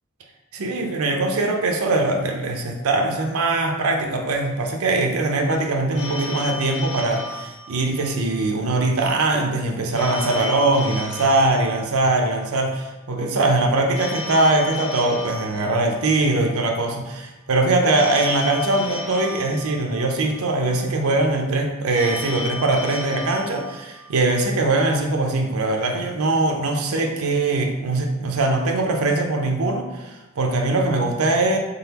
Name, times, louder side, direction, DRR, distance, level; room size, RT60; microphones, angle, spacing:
voice 1, 0.5-31.6, right 2 dB, 80° right, 3 dB, 0.6 m, -21 dB
Telephone, 5.9-8.4 9.9-12.4 13.9-16.4 17.9-20.4 21.9-24.4, left 2 dB, 85° left, 0.7 m, -34 dB
3.9 x 3.4 x 2.9 m, 1.1 s
head